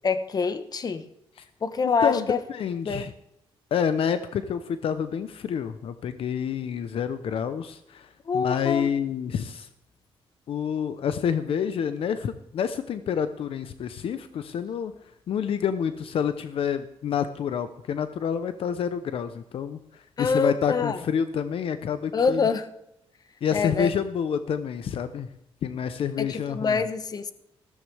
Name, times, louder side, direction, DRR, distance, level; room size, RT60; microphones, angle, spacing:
voice 1, 0.0-1.0 1.6-2.4 2.8-3.1 8.3-8.9 20.2-21.0 22.1-22.7 23.5-23.9 26.2-27.3, left 5 dB, 40° left, 11 dB, 1.0 m, -25 dB
voice 2, 2.0-3.1 3.7-9.7 10.5-14.9 15.3-22.4 23.4-25.3 25.6-26.8, left 7 dB, 70° left, 11 dB, 0.8 m, -28 dB
14.5 x 14.0 x 3.4 m, 0.83 s
cardioid pair, 125°, 10 cm